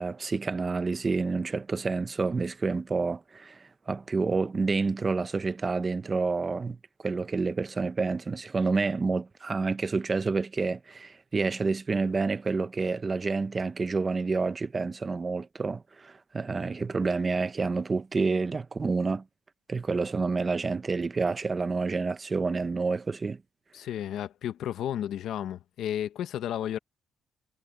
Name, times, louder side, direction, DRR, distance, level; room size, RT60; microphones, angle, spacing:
voice 1, 0.0-6.8 7.0-19.2 19.7-23.4, right 4 dB, 25° right, 0.9 m, -29 dB
voice 2, 23.7-26.8, left 10 dB, 75° left, 1.0 m, -32 dB
cardioid pair, 125°, 0 cm